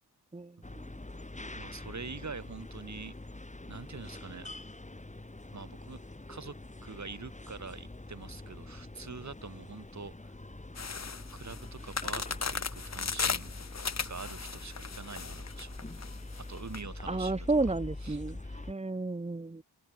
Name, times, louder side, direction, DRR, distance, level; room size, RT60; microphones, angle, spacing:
sound 1, 0.6-18.7, left 2 dB, 20° left, 5.6 m, -45 dB
voice 1, 1.6-3.1 3.7-4.5 5.5-6.0 6.3-6.6 6.8-10.3 11.3-13.5 14.1-15.7 16.5-17.7 18.0-18.7, right 4 dB, 45° right, 5.2 m, -45 dB
sound 2, 10.8-16.8, left 5 dB, 40° left, 1.5 m, -36 dB
voice 2, 17.1-18.4 18.7-19.6, right 3 dB, 15° right, 1.4 m, -31 dB
open air
wide cardioid pair, 105°, 39 cm